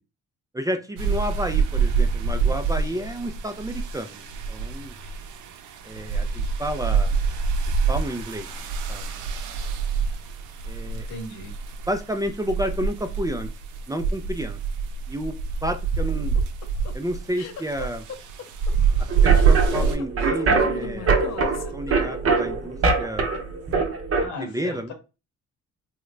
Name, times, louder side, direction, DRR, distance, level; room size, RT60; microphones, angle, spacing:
voice 1, 0.5-4.9 5.8-7.1 7.9-9.3 10.7-11.1 11.9-13.5 13.9-14.6 15.1-15.3 15.6-16.4 16.9-18.0 19.2-21.1 21.4-23.3 24.4-24.9, equal, 10° right, 6 dB, 0.4 m, -31 dB
sound 1, 1.0-20.0, right 5 dB, 80° right, 0.6 m, -25 dB
voice 2, 10.9-11.5 24.1-24.9, left 2 dB, 85° left, 3 dB, 1.3 m, -37 dB
sound 2, 16.1-22.4, left 7 dB, 60° left, 0.7 m, -39 dB
sound 3, 19.1-24.3, right 4 dB, 50° right, 0.8 m, -23 dB
3.6 x 2.1 x 3.2 m, 0.29 s
cardioid pair, 90°, 30 cm